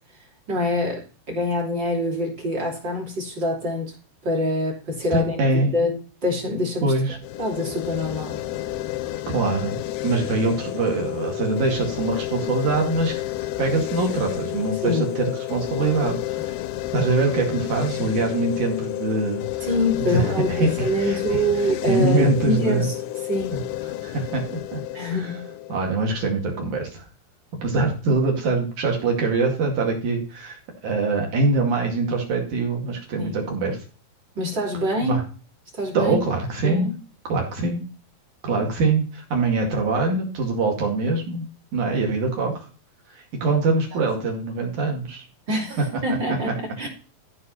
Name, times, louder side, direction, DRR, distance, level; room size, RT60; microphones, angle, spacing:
voice 1, 0.5-3.9 4.2-5.4 5.7-8.4 14.8-15.1 18.0-18.1 19.6-23.0 23.3-23.6 24.9-25.4 33.2-33.4 34.4-35.2 35.7-36.3 36.6-36.9 43.9-44.0 45.5-46.9, left 1 dB, 30° right, -2 dB, 3.5 m, -25 dB
voice 2, 5.1-5.7 6.8-7.2 9.3-9.8 10.0-13.2 13.6-15.2 15.5-16.5 16.9-19.7 20.0-21.2 21.9-22.9 24.0-25.1 25.7-27.0 27.6-33.8 35.1-35.2 35.9-36.9 37.3-37.9 38.4-41.5 41.7-42.7 43.1-45.2 46.3-46.5, right 3 dB, 55° right, 1 dB, 3.5 m, -23 dB
sound 1, 7.2-26.3, left 15 dB, 80° left, 1.9 m, -30 dB
14.0 x 5.5 x 4.3 m, 0.36 s
omnidirectional pair, 4.4 m